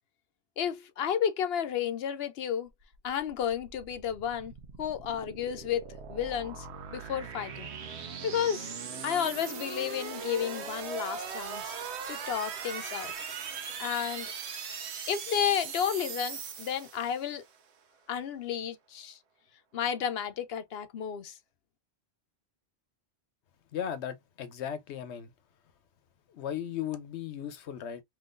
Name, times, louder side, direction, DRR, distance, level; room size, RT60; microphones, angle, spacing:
voice 1, 0.6-2.7 3.0-7.7 8.2-8.7 9.0-11.7 12.1-13.1 13.8-14.3 15.1-17.4 18.1-19.2 19.7-21.4, left 8 dB, 70° left, 0.8 m, -32 dB
sound 1, 2.8-17.4, right 6 dB, 80° right, 1.0 m, -40 dB
voice 2, 23.7-25.3 26.3-28.0, left 9 dB, 90° left, 1.0 m, -36 dB
3.6 x 3.0 x 2.4 m
omnidirectional pair, 1.1 m